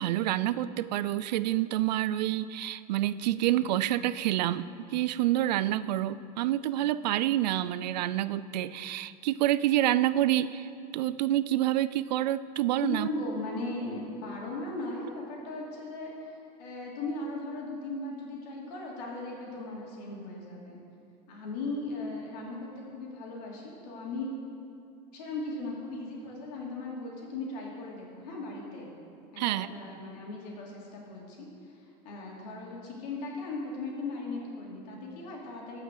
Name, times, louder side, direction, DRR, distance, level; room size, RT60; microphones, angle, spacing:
voice 1, 0.0-10.7 10.9-13.1 29.4-29.7, right 13 dB, 85° right, 16 dB, 0.4 m, -28 dB
voice 2, 12.8-16.3 16.6-20.8 21.3-24.3 25.1-28.9 29.3-31.5 32.0-35.8, left 2 dB, 75° left, -3 dB, 3.0 m, -37 dB
14.5 x 5.8 x 6.5 m, 2.5 s
supercardioid pair, 95°, 21 cm